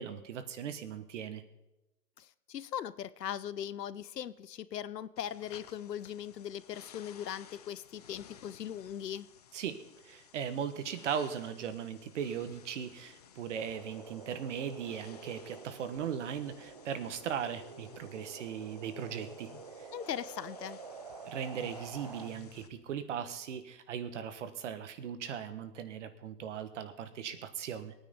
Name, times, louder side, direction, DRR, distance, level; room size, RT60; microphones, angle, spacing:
voice 1, 0.0-1.4 9.5-9.8 10.0-19.5 19.8-19.9 21.2-27.9, right 8 dB, 50° right, 11 dB, 1.4 m, -38 dB
voice 2, 2.2-9.3 19.9-20.8, left 10 dB, 85° left, 17 dB, 0.8 m, -39 dB
sound 1, 5.2-22.7, left 9 dB, 25° left, 0.5 m, -57 dB
sound 2, 13.5-22.3, right 5 dB, 25° right, 0.4 m, -49 dB
19.5 x 9.4 x 5.3 m, 0.96 s
hypercardioid pair, 145°, 48 cm